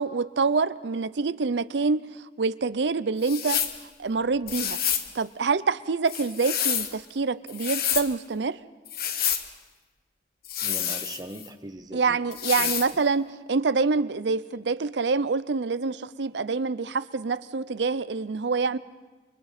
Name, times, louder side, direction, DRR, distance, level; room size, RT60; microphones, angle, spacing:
voice 1, 0.0-3.6 4.0-4.8 5.1-8.6 11.9-18.8, right 4 dB, 80° right, 16 dB, 0.6 m, -26 dB
sound 1, 3.2-3.8 4.5-5.1 6.1-6.9 7.5-8.1 8.9-9.5 10.4-11.5 12.3-12.9, left 9 dB, 55° left, 1.1 m, -28 dB
voice 2, 10.6-12.2 12.6-12.7, right 1 dB, 20° right, 6 dB, 1.1 m, -40 dB
28.5 x 24.0 x 4.2 m, 1.2 s
head